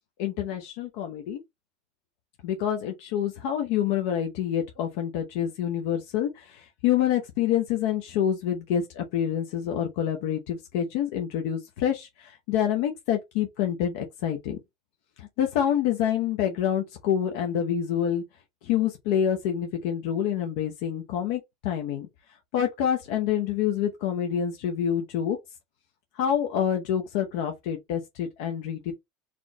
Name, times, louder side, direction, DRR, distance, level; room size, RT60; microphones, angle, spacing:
voice 1, 0.2-1.4 2.4-14.6 15.2-18.2 18.6-22.1 22.5-25.4 26.1-28.9, left 9 dB, 60° left, 0.7 m, -27 dB
4.2 x 3.0 x 2.9 m
supercardioid pair, 165°, 0 cm